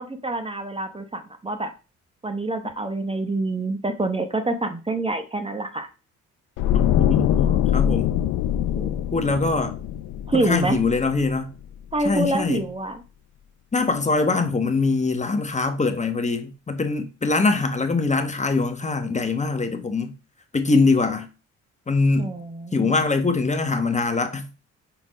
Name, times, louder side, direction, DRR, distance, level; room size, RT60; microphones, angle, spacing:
voice 1, 0.0-1.7 2.2-5.9 10.3-10.8 11.9-13.0 22.2-23.0, right 2 dB, 20° right, 1.0 m, -26 dB
sound 1, 6.6-11.7 11.9-12.2, left 10 dB, 90° left, 0.5 m, -23 dB
voice 2, 6.7-8.1 8.7-9.8 10.3-11.5 12.0-12.6 13.7-20.1 20.5-21.3 21.9-22.3 22.7-24.5, left 3 dB, 25° left, 1.1 m, -23 dB
5.6 x 4.4 x 5.1 m
cardioid pair, 90°, 30 cm